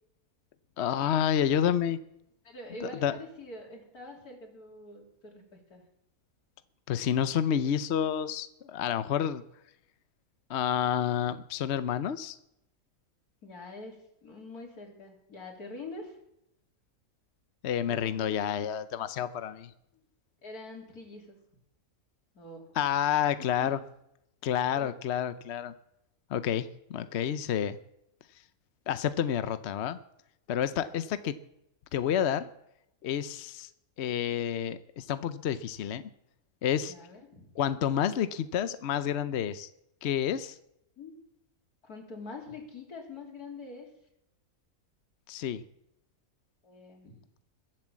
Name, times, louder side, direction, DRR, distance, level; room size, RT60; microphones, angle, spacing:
voice 1, 0.8-2.0 2.8-3.1 6.9-9.4 10.5-12.4 17.6-19.7 22.8-23.8 24.4-25.7 26.3-27.8 28.9-30.0 30.5-31.4 31.9-32.5 33.0-33.7 34.0-36.0 36.6-36.9 37.6-39.7 40.0-40.5 45.3-45.6, left 9 dB, 55° left, 13 dB, 0.8 m, -29 dB
voice 2, 2.4-5.8 13.4-16.2 17.9-18.4 19.9-20.0 20.4-21.4 22.3-22.7 23.4-23.7 30.7-31.0 36.9-37.5 41.0-41.1 41.8-43.9 46.6-47.2, left 2 dB, 80° left, 1 dB, 3.7 m, -45 dB
21.5 x 7.7 x 7.4 m, 0.81 s
omnidirectional pair, 1.6 m